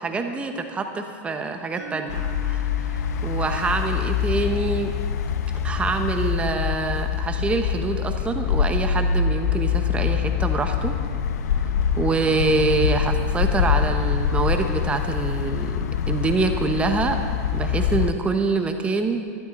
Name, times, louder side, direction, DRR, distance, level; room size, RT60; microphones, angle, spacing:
voice 1, 0.0-2.2 2.4-2.6 2.9-4.9 5.5-11.0 12.0-15.8 16.1-17.2 17.5-19.3, right 3 dB, 15° right, 5 dB, 0.8 m, -25 dB
sound 1, 1.8-5.8, right 11 dB, 80° right, 1.8 m, -44 dB
sound 2, 2.1-18.1, left 8 dB, 85° left, 0.6 m, -24 dB
14.5 x 11.5 x 4.1 m, 2.1 s
supercardioid pair, 145°, 9 cm